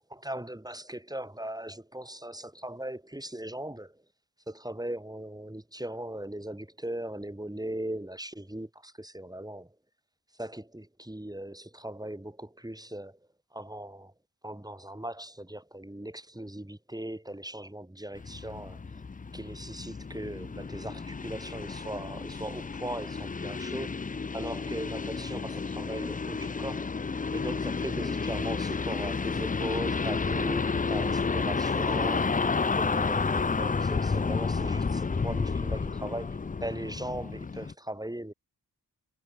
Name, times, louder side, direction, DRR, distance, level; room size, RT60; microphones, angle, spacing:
voice 1, 0.0-4.0 4.5-9.7 10.4-13.2 13.5-14.1 14.4-18.8 19.3-24.0 24.3-26.9 27.3-32.3 32.7-38.3, right 1 dB, 10° right, 5.7 m, -39 dB
sound 1, 18.1-37.7, left 4 dB, 20° left, 0.5 m, -31 dB
wide cardioid pair, 90°, 38 cm